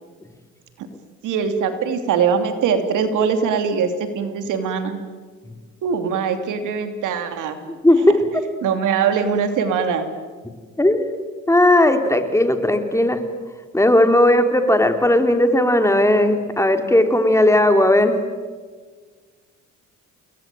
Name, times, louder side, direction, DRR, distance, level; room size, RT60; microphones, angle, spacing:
voice 1, 1.2-5.0 5.8-7.6 8.6-10.0, right 6 dB, 85° right, 8 dB, 3.0 m, -22 dB
voice 2, 7.8-8.2 10.8-11.1 11.5-13.2 13.7-18.2, left 1 dB, 10° left, 7 dB, 3.1 m, -16 dB
29.0 x 21.0 x 9.2 m, 1.5 s
cardioid pair, 90°, 30 cm